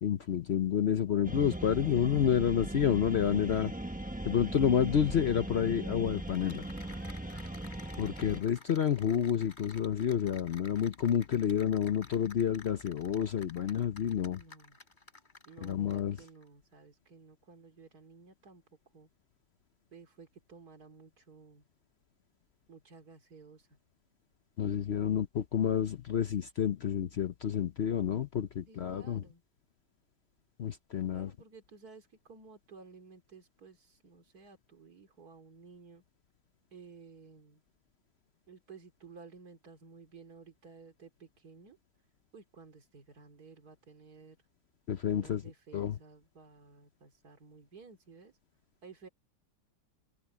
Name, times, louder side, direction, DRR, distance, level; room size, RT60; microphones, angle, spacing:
voice 1, 0.0-3.7 4.2-6.6 8.0-14.4 15.6-16.2 24.6-29.2 30.6-31.3 44.9-45.4 45.7-46.0, left 9 dB, 55° left, 0.7 m, -29 dB
sound 1, 1.2-8.4, right 1 dB, 10° right, 0.6 m, -39 dB
Cheering / Applause, 6.1-16.4, left 3 dB, 30° left, 4.4 m, -54 dB
voice 2, 14.3-14.8 15.4-18.6 18.9-19.1 19.9-21.7 22.7-23.8 28.7-29.4 31.1-36.0 36.7-37.6 38.5-41.8 42.3-44.4 45.1-48.3 48.8-49.1, right 4 dB, 65° right, 3.3 m, -54 dB
omnidirectional pair, 1.8 m